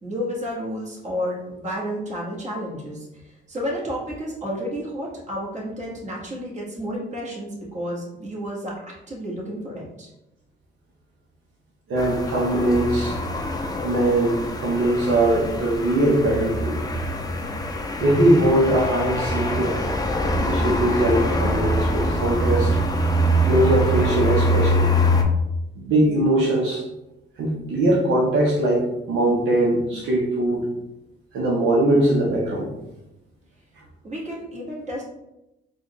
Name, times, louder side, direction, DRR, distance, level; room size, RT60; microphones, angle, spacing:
voice 1, 0.0-8.7 9.1-10.1 34.0-35.0, equal, 35° right, -4 dB, 1.5 m, -31 dB
voice 2, 11.9-13.2 13.8-16.8 18.0-19.8 20.4-22.8 23.5-24.9 25.8-26.8 27.4-30.6 31.3-32.7, right 1 dB, 75° right, -3 dB, 0.9 m, -21 dB
sound 1, 12.0-25.2, equal, 20° left, 0.5 m, -24 dB
4.0 x 2.4 x 3.0 m, 0.91 s
cardioid pair, 90°, 20 cm